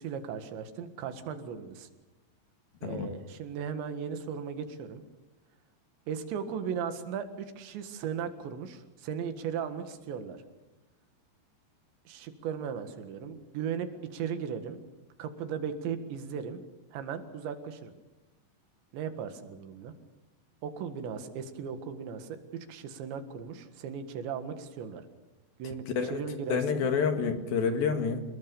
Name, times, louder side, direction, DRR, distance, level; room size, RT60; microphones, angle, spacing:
voice 1, 0.0-1.9 2.8-5.0 6.1-10.4 12.1-14.8 15.2-16.6 16.9-18.0 18.9-19.9 20.6-25.1 25.6-26.9, right 7 dB, 85° right, 8 dB, 4.0 m, -37 dB
voice 2, 2.8-3.1 25.6-26.2 26.5-28.2, left 6 dB, 60° left, 6 dB, 3.4 m, -29 dB
27.0 x 20.5 x 7.0 m, 1.1 s
omnidirectional pair, 5.0 m